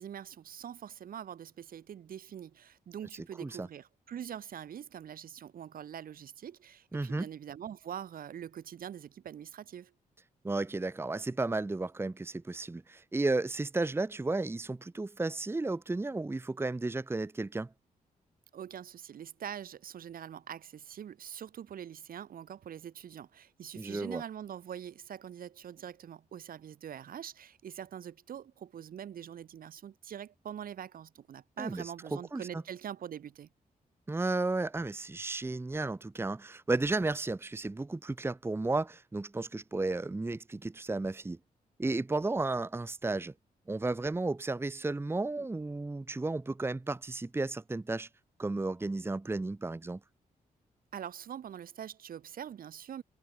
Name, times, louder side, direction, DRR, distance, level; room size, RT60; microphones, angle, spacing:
voice 1, 0.0-9.9 18.5-33.5 50.9-53.0, right 9 dB, 75° right, 2.3 m, -44 dB
voice 2, 6.9-7.3 10.4-17.7 23.8-24.2 31.6-32.6 34.1-41.4 41.8-43.3 43.7-48.1 48.4-50.0, right 2 dB, 15° right, 0.9 m, -33 dB
cardioid pair, 90°, 15 cm